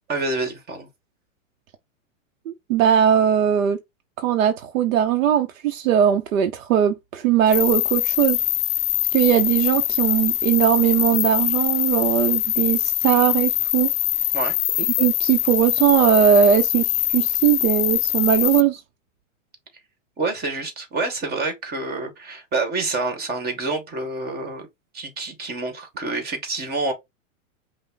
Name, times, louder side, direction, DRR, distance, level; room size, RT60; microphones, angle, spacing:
voice 1, 0.1-0.9 14.3-14.5 20.2-24.7 24.9-26.9, right 3 dB, 25° right, 1.7 m, -27 dB
voice 2, 2.5-3.8 4.2-8.4 9.1-13.9 15.0-18.8, right 10 dB, 75° right, 0.8 m, -19 dB
sound 1, 7.5-18.6, left 15 dB, 40° left, 0.5 m, -23 dB
5.5 x 2.3 x 3.9 m
hypercardioid pair, 130°, 40 cm